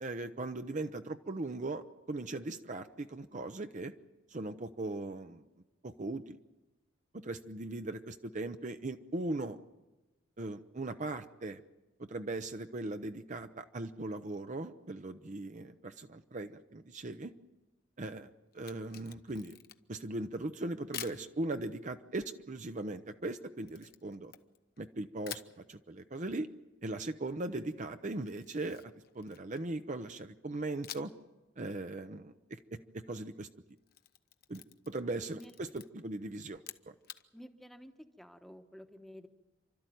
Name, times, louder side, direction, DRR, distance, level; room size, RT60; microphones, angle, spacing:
voice 1, 0.0-3.9 4.3-5.4 5.8-6.4 7.1-9.6 10.4-11.6 12.1-17.3 18.0-19.6 19.9-24.3 24.8-25.4 25.7-26.5 26.8-28.8 29.1-31.1 31.6-33.5 34.5-36.9, right 2 dB, 40° right, 8 dB, 0.7 m, -39 dB
Camera, 18.5-20.0 20.9-21.2 23.7-24.8 25.2-25.6 28.2-29.7 30.8-31.3 31.6-31.7 33.7-35.1 35.4-35.9 36.5-37.2, left 11 dB, 50° left, 0.9 m, -48 dB
voice 2, 37.3-37.9 38.2-39.3, equal, ahead, 7 dB, 1.1 m, -51 dB
29.0 x 13.0 x 9.2 m, 1.1 s
head